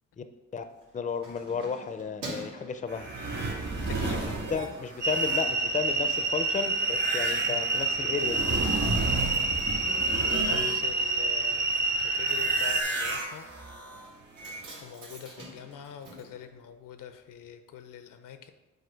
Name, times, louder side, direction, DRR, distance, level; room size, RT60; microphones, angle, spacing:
Keys jangling, 0.6-3.7 4.2-4.4 4.7-5.4 5.7-5.8 6.0-6.1 6.3-17.2 17.4-17.5, right 1 dB, 85° right, 2.1 m, -48 dB
voice 1, 0.9-3.1 4.3-8.5, left 6 dB, 25° left, 9 dB, 0.5 m, -33 dB
sound 1, 2.9-11.1 11.4-14.8, right 2 dB, 50° right, 1.9 m, -34 dB
voice 2, 3.9-4.3 7.4-7.6 10.3-13.5 14.8-18.5, left 8 dB, 80° left, 9 dB, 0.7 m, -44 dB
sound 2, 5.0-12.8, right 3 dB, 35° right, 0.6 m, -28 dB
7.8 x 2.6 x 5.1 m, 1.1 s
cardioid pair, 80°, 32 cm